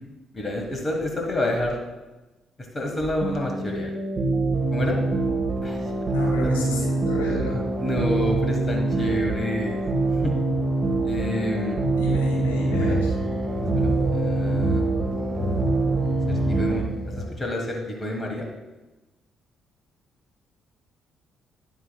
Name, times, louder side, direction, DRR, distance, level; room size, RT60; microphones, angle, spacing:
voice 1, 0.3-1.8 2.7-3.9 4.7-5.0 5.6-5.8 7.8-9.8 10.1-10.3 11.0-11.8 12.7-13.0 13.8-14.8 16.3-16.8 17.1-18.5, left 1 dB, 30° left, 1 dB, 1.5 m, -29 dB
sound 1, 3.2-16.8, right 3 dB, 40° right, 1.5 m, -25 dB
voice 2, 6.1-7.6 11.9-13.0, left 2 dB, 70° left, -3 dB, 2.0 m, -30 dB
sound 2, 6.9-17.2, equal, 10° left, 2.8 m, -32 dB
10.0 x 8.9 x 2.3 m, 1.1 s
figure-of-eight pair, 40°, 0 cm